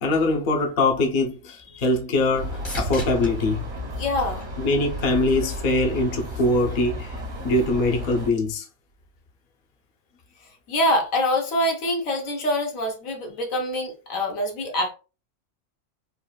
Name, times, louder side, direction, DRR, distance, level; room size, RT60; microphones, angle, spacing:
voice 1, 0.0-3.6 4.6-8.7, left 2 dB, 50° left, 0.8 m, -23 dB
sound 1, 1.6-5.1 5.6-6.3 14.1-14.2, equal, 70° left, 1.8 m, -40 dB
sound 2, 2.3-8.3, left 1 dB, 60° right, 1.2 m, -33 dB
voice 2, 4.0-4.5 10.7-14.9, left 1 dB, 85° left, 1.3 m, -25 dB
3.9 x 2.4 x 2.2 m
omnidirectional pair, 1.4 m